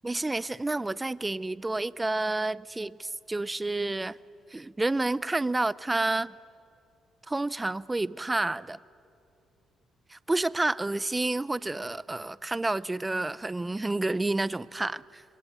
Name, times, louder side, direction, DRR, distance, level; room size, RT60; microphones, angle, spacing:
voice 1, 0.0-4.2 4.5-6.3 7.3-8.8 10.1-15.2, right 2 dB, 15° right, 0.5 m, -29 dB
26.0 x 23.5 x 9.2 m
cardioid pair, 90°, 0 cm